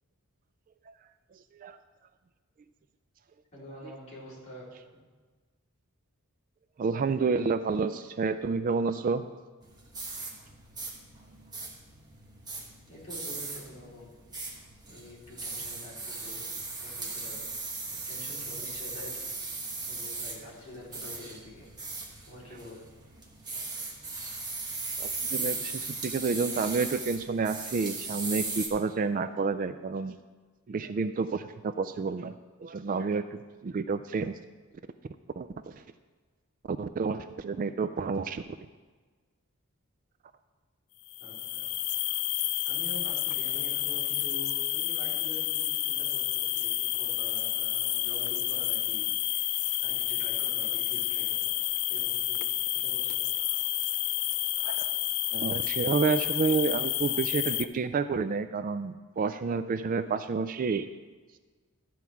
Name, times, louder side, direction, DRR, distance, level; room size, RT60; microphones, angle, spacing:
voice 1, 3.5-4.7 12.9-14.1 14.9-16.5 16.8-17.5 18.1-19.3 19.9-21.7 22.3-22.8 41.2-41.7 42.6-51.6 51.9-52.5 52.7-53.3, left 1 dB, 30° left, -7 dB, 3.7 m, -46 dB
voice 2, 6.8-9.3 25.0-30.1 30.7-32.3 32.6-34.3 35.4-35.8 36.7-38.4 54.6-54.9 55.3-60.9, right 4 dB, 40° right, 11 dB, 0.3 m, -29 dB
sound 1, 9.6-28.7, right 3 dB, 20° right, 1.2 m, -38 dB
sound 2, 41.1-57.7, left 14 dB, 75° left, 0.4 m, -30 dB
13.0 x 4.6 x 7.0 m, 1.4 s
head